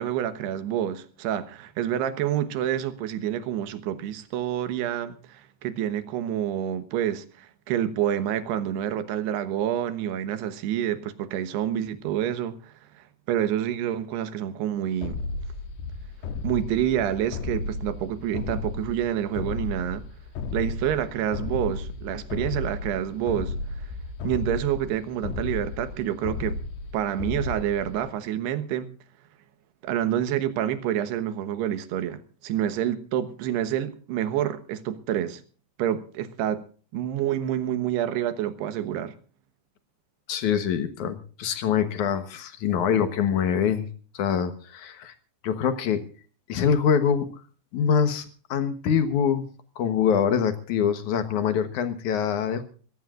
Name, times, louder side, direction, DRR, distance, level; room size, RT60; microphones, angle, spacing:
voice 1, 0.0-15.2 16.4-20.0 20.5-23.5 24.2-26.6 26.9-28.9 29.8-35.4 35.8-36.6 36.9-39.1, right 11 dB, 75° right, 3.1 m, -28 dB
sound 1, 15.0-28.1, left 3 dB, 80° left, 3.4 m, -34 dB
voice 2, 40.3-43.9 44.1-45.2 45.4-46.0 46.5-47.3 47.7-49.5 49.8-52.6, left 7 dB, 65° left, 2.0 m, -24 dB
24.0 x 17.0 x 2.5 m
omnidirectional pair, 4.9 m